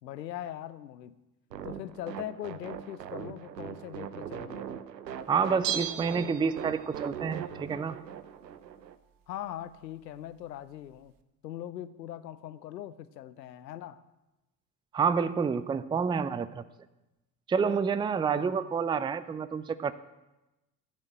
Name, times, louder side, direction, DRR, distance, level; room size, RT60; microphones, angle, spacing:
voice 1, 0.0-1.2 1.6-4.7 9.3-11.1 11.4-14.0 18.3-18.5, left 12 dB, 85° left, 14 dB, 0.7 m, -41 dB
sound 1, 1.5-9.0, right 9 dB, 90° right, 0.7 m, -41 dB
voice 2, 5.3-8.0 14.9-16.6 17.5-19.9, right 6 dB, 10° right, 14 dB, 0.5 m, -28 dB
Bell, 5.6-7.0 7.3-7.4, right 10 dB, 45° right, 1.0 m, -35 dB
14.0 x 6.5 x 7.8 m, 1.0 s
figure-of-eight pair, 60°, 49 cm